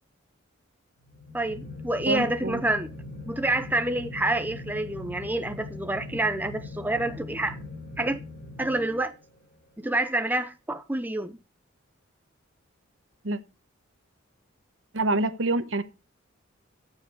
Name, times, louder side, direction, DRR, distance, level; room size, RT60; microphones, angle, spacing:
sound 1, 1.0-9.4, left 2 dB, 40° left, 4.5 m, -41 dB
voice 1, 1.3-2.9 3.3-7.6 8.0-8.2 8.6-9.1 9.8-11.4, right 2 dB, 10° right, 0.6 m, -28 dB
voice 2, 2.1-2.6 13.2-13.4 14.9-15.8, right 2 dB, 70° right, 1.0 m, -26 dB
14.0 x 7.4 x 4.6 m
head